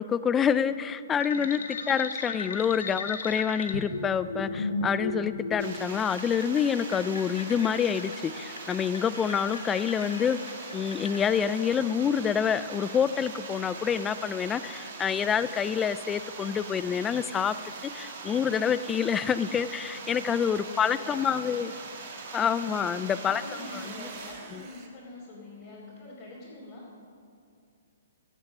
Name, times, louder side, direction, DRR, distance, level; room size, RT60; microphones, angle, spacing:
voice 1, 0.0-1.6 1.9-10.4 10.7-17.6 17.8-21.7 22.3-23.4 24.0-24.1 24.5-24.6, left 7 dB, 15° left, 15 dB, 0.3 m, -27 dB
sound 1, 1.2-11.4, left 3 dB, 85° left, 1.3 m, -36 dB
sound 2, 5.6-24.3, right 4 dB, 50° right, 2.4 m, -42 dB
sound 3, 16.8-18.7 19.2-19.8 22.9-24.9, right 6 dB, 30° right, 1.4 m, -55 dB
voice 2, 19.9-21.6 21.9-22.2 22.6-26.9, left 2 dB, 30° left, -7 dB, 3.3 m, -45 dB
15.5 x 8.8 x 5.5 m, 2.4 s
hypercardioid pair, 160°, 0 cm